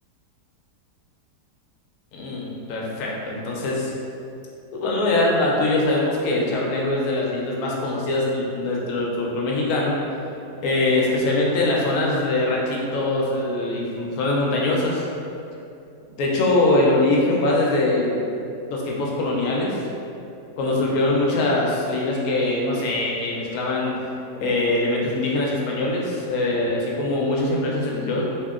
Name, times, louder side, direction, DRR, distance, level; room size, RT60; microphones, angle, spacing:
voice 1, 2.1-3.9 4.7-10.0 10.6-15.1 16.2-18.2 18.7-19.8 20.6-23.9 24.4-28.2, left 2 dB, 70° left, -3 dB, 0.8 m, -22 dB
2.7 x 2.7 x 2.4 m, 2.6 s
omnidirectional pair, 1.9 m